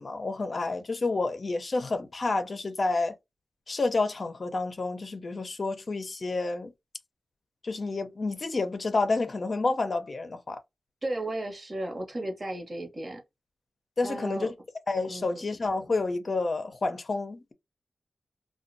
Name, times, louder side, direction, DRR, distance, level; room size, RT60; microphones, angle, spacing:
voice 1, 0.0-3.2 3.7-6.7 7.6-10.6 14.0-14.5 14.9-17.5, left 3 dB, 50° left, 0.5 m, -29 dB
voice 2, 11.0-13.2 14.0-14.5 15.1-15.5, right 1 dB, 45° right, 1.0 m, -34 dB
2.4 x 2.2 x 2.6 m
cardioid pair, 60°, 0 cm